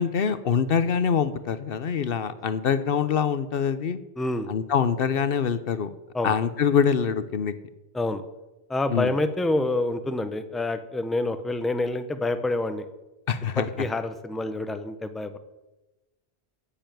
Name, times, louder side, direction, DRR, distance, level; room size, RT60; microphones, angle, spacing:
voice 1, 0.0-4.0 4.5-5.9 6.2-7.5 8.9-9.1 13.3-13.7, left 7 dB, 65° left, 13 dB, 0.9 m, -24 dB
voice 2, 4.2-4.5 6.1-6.3 7.9-8.2 8.7-12.9 13.6-15.4, left 2 dB, ahead, 9 dB, 0.7 m, -27 dB
10.0 x 7.0 x 9.2 m, 1.0 s
omnidirectional pair, 1.1 m